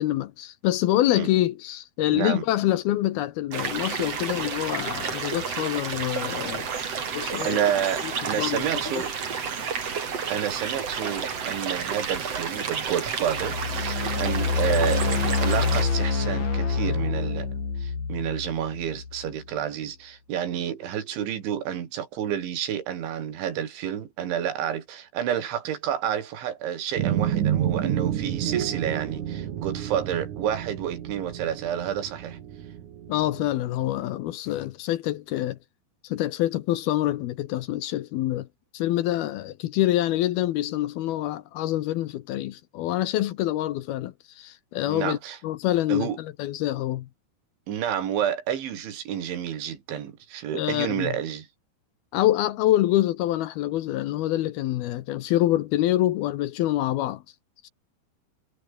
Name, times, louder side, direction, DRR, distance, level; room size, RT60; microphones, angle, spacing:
voice 1, 0.0-6.7 7.1-7.6 8.3-9.0 33.1-35.6 36.0-38.5 38.7-45.2 45.4-47.1 50.5-51.2 52.1-57.2, left 14 dB, 70° left, 2.5 m, -26 dB
voice 2, 2.1-2.4 7.4-9.1 10.3-32.4 44.9-45.4 45.9-46.2 47.7-51.5, right 9 dB, 80° right, 5.3 m, -30 dB
sound 1, 3.5-15.8, right 6 dB, 40° right, 3.4 m, -31 dB
sound 2, 13.2-19.4, left 5 dB, 40° left, 5.5 m, -27 dB
sound 3, 27.0-33.5, right 10 dB, 55° right, 2.5 m, -29 dB
omnidirectional pair, 5.3 m